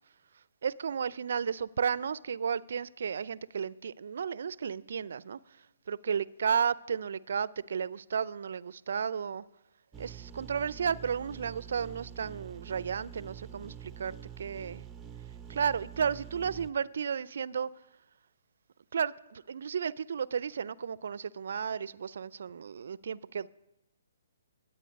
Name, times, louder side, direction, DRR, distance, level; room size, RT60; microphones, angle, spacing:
voice 1, 0.6-5.4 5.9-9.4 10.0-14.8 15.5-17.7 18.9-23.5, right 7 dB, 65° right, 0.4 m, -33 dB
sound 1, 9.9-16.7, right 9 dB, 15° right, 0.6 m, -46 dB
21.0 x 8.5 x 5.2 m
figure-of-eight pair, 135°, 0 cm